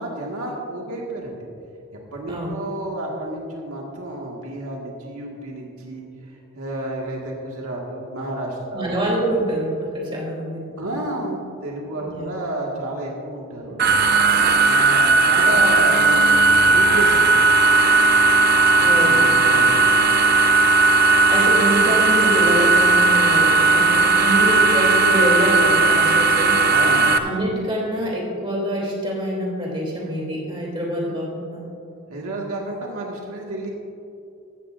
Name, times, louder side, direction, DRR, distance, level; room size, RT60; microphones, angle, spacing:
voice 1, 0.0-1.4 2.1-9.0 10.8-13.8 14.6-17.6 17.9-18.1 18.7-19.9 26.7-27.1 32.1-33.7, right 1 dB, 80° right, -2 dB, 1.8 m, -31 dB
voice 2, 8.7-10.6 12.0-12.3 18.8-19.3 21.3-26.6 27.2-31.6, right 1 dB, 25° right, -3 dB, 2.9 m, -25 dB
sound 1, 13.8-27.2, right 3 dB, 45° right, 0.6 m, -16 dB
15.0 x 13.5 x 2.5 m, 2.6 s
head